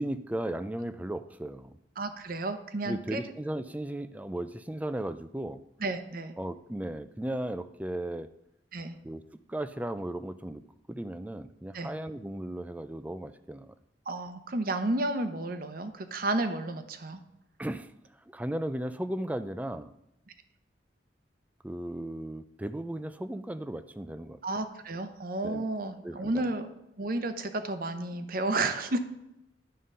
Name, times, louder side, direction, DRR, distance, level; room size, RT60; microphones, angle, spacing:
voice 1, 0.0-1.8 2.8-5.6 6.4-8.3 9.0-9.2 9.5-10.6 10.9-13.7 17.6-17.9 18.3-19.9 21.6-24.4 25.4-25.7 26.0-26.5, right 1 dB, 10° right, 12 dB, 0.3 m, -36 dB
voice 2, 2.0-3.2 5.8-6.3 8.7-8.9 11.7-11.9 14.1-17.2 24.4-26.7 27.0-29.0, right 2 dB, 50° right, 8 dB, 0.7 m, -32 dB
11.0 x 3.8 x 5.4 m, 0.86 s
head